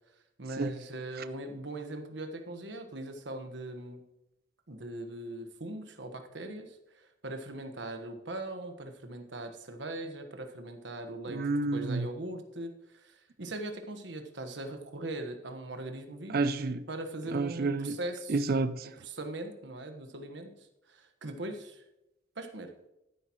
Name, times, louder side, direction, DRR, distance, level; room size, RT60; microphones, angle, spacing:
voice 1, 0.4-4.0 4.7-11.4 11.7-16.4 16.9-18.4 18.8-20.5 20.9-21.8 22.3-22.7, right 2 dB, 70° right, 1.4 m, -40 dB
voice 2, 11.3-12.1 16.3-16.8 17.3-18.0 18.3-18.9, right 3 dB, 55° right, 0.5 m, -29 dB
12.0 x 10.5 x 3.1 m
head